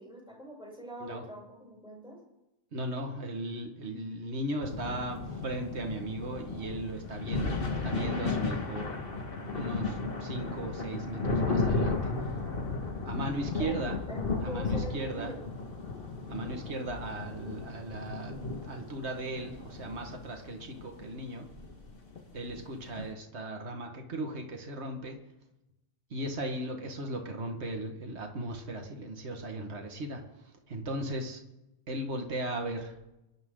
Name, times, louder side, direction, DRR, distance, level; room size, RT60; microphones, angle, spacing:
voice 1, 0.0-2.2 13.6-15.4, equal, 5° right, -4 dB, 7.4 m, -43 dB
voice 2, 2.7-8.9 9.5-12.1 13.0-14.0 14.4-15.3 16.3-18.4 18.6-21.5 22.3-25.2 26.1-30.2 30.7-31.4 31.9-32.9, right 1 dB, 55° right, 3 dB, 2.1 m, -37 dB
sound 1, 4.6-23.1, left 3 dB, 45° left, 2.0 m, -34 dB
25.0 x 12.0 x 3.9 m, 0.93 s
omnidirectional pair, 1.4 m